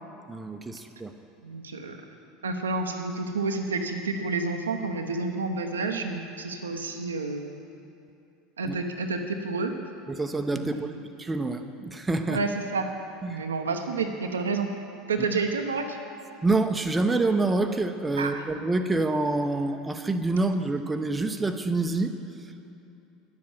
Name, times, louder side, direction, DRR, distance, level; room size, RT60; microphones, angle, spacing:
voice 1, 0.3-1.1 8.6-8.8 10.1-10.9 11.2-12.4 13.2-13.4 16.4-22.1, right 2 dB, 15° right, 6 dB, 0.8 m, -27 dB
voice 2, 1.4-2.0 2.4-7.4 8.6-9.8 10.5-11.0 12.3-12.9 13.3-14.7 15.1-16.0 18.2-18.4, right 3 dB, 80° right, 4 dB, 0.8 m, -29 dB
10.5 x 7.5 x 7.2 m, 2.8 s
figure-of-eight pair, 75°, 0 cm